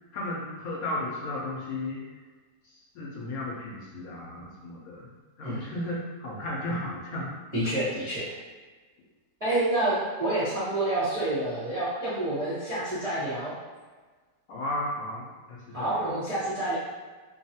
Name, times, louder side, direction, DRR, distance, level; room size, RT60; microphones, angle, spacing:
voice 1, 0.1-2.0 2.9-7.4 14.5-16.1, left 1 dB, 70° left, -4 dB, 1.0 m, -34 dB
voice 2, 7.5-8.3 9.4-13.5 15.7-16.8, right 1 dB, 40° right, -12 dB, 0.5 m, -28 dB
2.9 x 2.3 x 2.7 m, 1.4 s
omnidirectional pair, 1.7 m